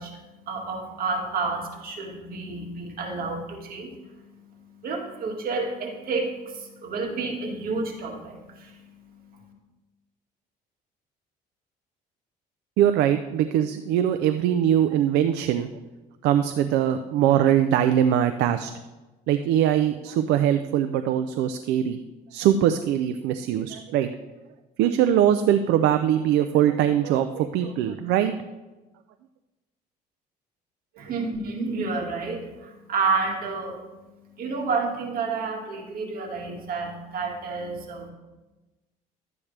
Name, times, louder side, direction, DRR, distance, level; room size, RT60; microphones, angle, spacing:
voice 1, 0.0-9.5 31.0-38.1, right 4 dB, 60° right, 1 dB, 2.0 m, -30 dB
voice 2, 12.8-15.7 16.2-18.7 19.3-22.0 22.3-24.1 24.8-28.3, right 10 dB, 90° right, 8 dB, 0.5 m, -22 dB
12.0 x 8.6 x 3.3 m, 1.1 s
cardioid pair, 110°, 17 cm